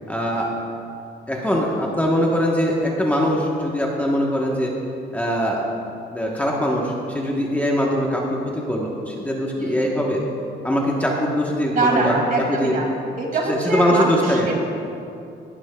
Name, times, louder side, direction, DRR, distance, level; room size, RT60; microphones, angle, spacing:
voice 1, 0.1-0.5 1.3-4.7 5.1-5.6 6.1-8.2 8.5-10.2 10.6-12.1 12.5-12.7 13.5-14.5, equal, 5° left, -3 dB, 1.0 m, -22 dB
voice 2, 11.7-12.9 13.2-14.5, right 3 dB, 45° right, 0 dB, 2.3 m, -23 dB
19.0 x 11.5 x 2.3 m, 2.6 s
cardioid pair, 135°, 20 cm